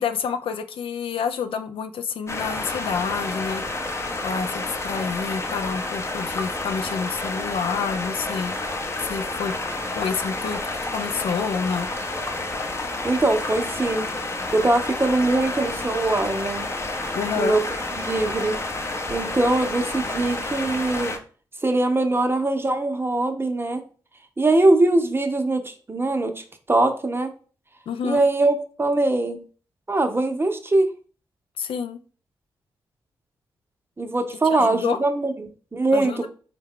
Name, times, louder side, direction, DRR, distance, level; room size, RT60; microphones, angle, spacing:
voice 1, 0.0-3.6 4.2-8.6 9.0-9.5 9.9-10.6 10.9-11.9 17.1-17.6 27.9-28.2 31.6-32.0 34.5-35.0 35.9-36.3, left 6 dB, 65° left, 8 dB, 0.4 m, -28 dB
sound 1, 2.3-21.2, left 2 dB, 30° left, 0.6 m, -30 dB
voice 2, 13.0-14.1 14.5-16.6 17.4-17.6 18.0-18.6 19.1-21.2 21.6-23.8 24.4-27.3 28.0-29.4 29.9-30.9 34.0-36.3, right 2 dB, 25° right, 6 dB, 0.6 m, -22 dB
3.5 x 2.1 x 3.6 m, 0.39 s
supercardioid pair, 40°, 10 cm